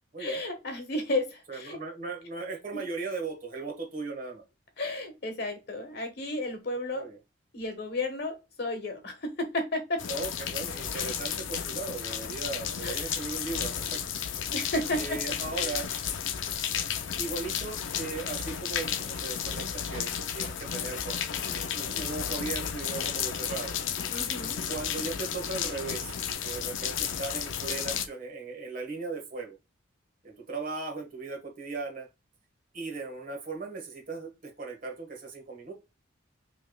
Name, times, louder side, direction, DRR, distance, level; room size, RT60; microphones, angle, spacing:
voice 1, 0.2-1.8 2.7-2.8 4.8-7.1 7.5-10.0 12.8-13.1 14.5-15.8 24.1-24.6, left 2 dB, 55° left, 1.2 m, -33 dB
voice 2, 1.5-4.4 6.9-7.2 10.1-14.0 14.9-15.9 17.2-23.8 24.7-26.2 26.4-29.6 30.2-32.1 32.7-35.7, right 4 dB, 45° right, 1.5 m, -37 dB
sound 1, 10.0-28.1, left 8 dB, 70° left, 0.5 m, -33 dB
5.6 x 3.5 x 2.2 m
head